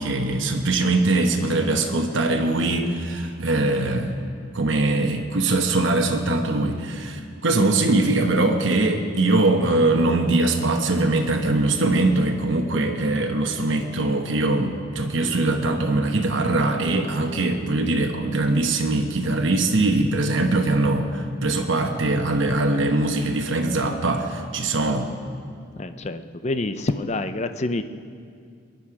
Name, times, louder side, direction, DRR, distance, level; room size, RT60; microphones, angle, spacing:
voice 1, 0.0-25.1, right 2 dB, 70° right, 3 dB, 1.1 m, -22 dB
voice 2, 25.8-27.8, left 2 dB, 35° left, 10 dB, 0.6 m, -27 dB
22.0 x 10.5 x 4.8 m, 2.3 s
head